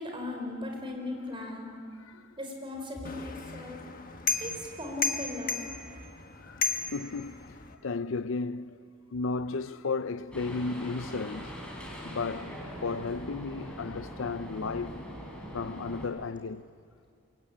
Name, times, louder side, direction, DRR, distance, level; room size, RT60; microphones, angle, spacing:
voice 1, 0.0-1.7 2.4-3.8 4.4-5.7, left 2 dB, 25° right, 4.7 m, -38 dB
sound 1, 3.0-7.7, left 4 dB, 40° left, 1.4 m, -34 dB
voice 2, 6.9-8.8 9.1-11.5 12.0-15.0 15.5-16.6, left 4 dB, 65° left, 0.6 m, -34 dB
sound 2, 10.3-16.1, equal, 5° left, 4.4 m, -42 dB
26.5 x 22.5 x 8.7 m
head